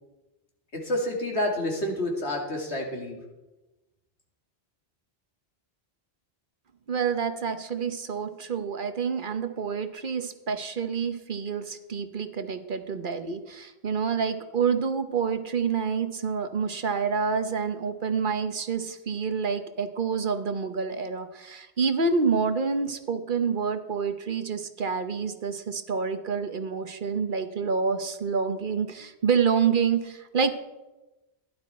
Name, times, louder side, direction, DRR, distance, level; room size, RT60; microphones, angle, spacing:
voice 1, 0.7-3.2, left 1 dB, 85° left, 0 dB, 2.8 m, -29 dB
voice 2, 6.9-30.5, right 5 dB, 55° right, 8 dB, 1.0 m, -28 dB
16.0 x 11.5 x 4.3 m, 1.1 s
omnidirectional pair, 1.1 m